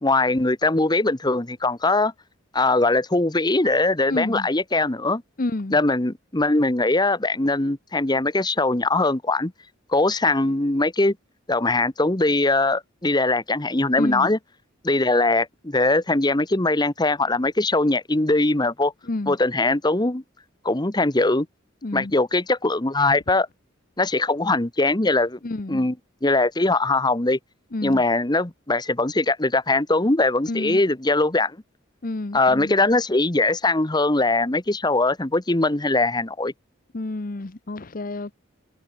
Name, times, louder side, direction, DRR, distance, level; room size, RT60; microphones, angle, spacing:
voice 1, 0.0-2.1 2.5-5.2 5.7-9.5 9.9-11.1 11.5-14.4 14.8-18.9 19.3-20.2 20.6-21.5 21.9-23.5 24.0-25.4 25.7-25.9 26.2-27.4 27.8-31.6 32.3-36.5, left 2 dB, 20° left, 1.2 m, -21 dB
voice 2, 4.1-4.5 5.4-5.8 14.0-14.3 19.1-19.4 21.8-22.1 25.4-25.9 27.7-28.0 30.5-30.8 32.0-32.8 36.9-38.3, left 2 dB, 45° left, 0.9 m, -29 dB
head